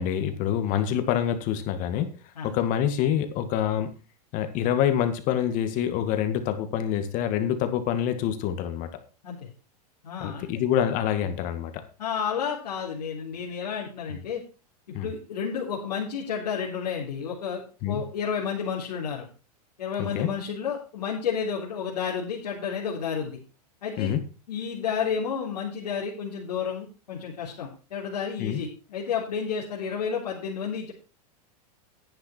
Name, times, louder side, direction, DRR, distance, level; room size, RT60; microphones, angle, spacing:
voice 1, 0.0-2.1 2.4-3.9 4.3-8.9 10.2-11.7 14.1-14.2 14.9-15.1 17.8-18.0 20.0-20.3 24.0-24.2 28.4-28.6, left 10 dB, 40° left, 9 dB, 1.9 m, -26 dB
voice 2, 10.0-10.5 12.0-14.4 15.0-19.3 19.8-23.4 23.8-24.1 24.5-30.9, left 7 dB, 85° left, -5 dB, 3.6 m, -31 dB
10.5 x 9.6 x 4.4 m, 0.35 s
supercardioid pair, 135°, 20 cm